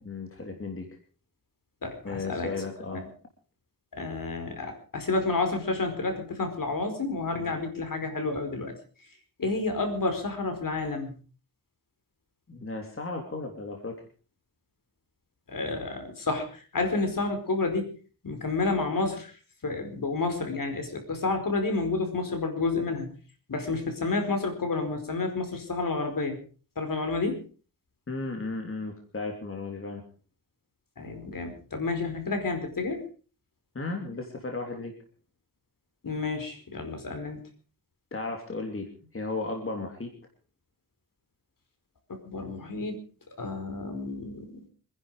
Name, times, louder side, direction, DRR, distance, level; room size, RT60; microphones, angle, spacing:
voice 1, 0.0-0.9 2.0-3.0 7.4-7.5 12.5-14.0 28.1-30.0 33.7-34.9 38.1-40.1, left 3 dB, 35° left, 2 dB, 3.2 m, -35 dB
voice 2, 1.8-2.5 2.9-3.0 3.9-8.7 9.4-11.1 15.5-17.9 18.2-19.3 19.6-23.1 23.5-26.4 26.8-27.4 31.0-33.0 36.0-37.4 42.2-43.0 43.4-44.5, left 3 dB, 60° left, 6 dB, 4.9 m, -30 dB
26.0 x 11.0 x 5.0 m, 0.39 s
wide cardioid pair, 105°, 36 cm